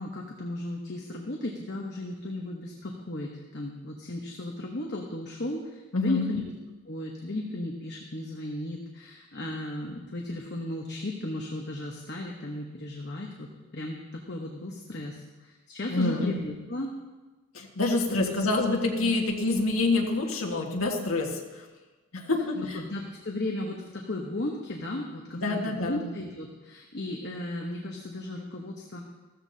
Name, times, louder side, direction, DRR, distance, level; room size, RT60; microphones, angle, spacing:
voice 1, 0.0-6.5 6.9-16.9 18.1-18.4 19.0-19.1 22.5-29.0, left 1 dB, 50° left, 0 dB, 1.1 m, -35 dB
voice 2, 5.9-6.2 15.9-16.3 17.5-21.7 22.1-22.8 25.3-26.0, left 2 dB, 70° left, 0 dB, 1.7 m, -27 dB
15.0 x 14.0 x 2.8 m, 1.2 s
head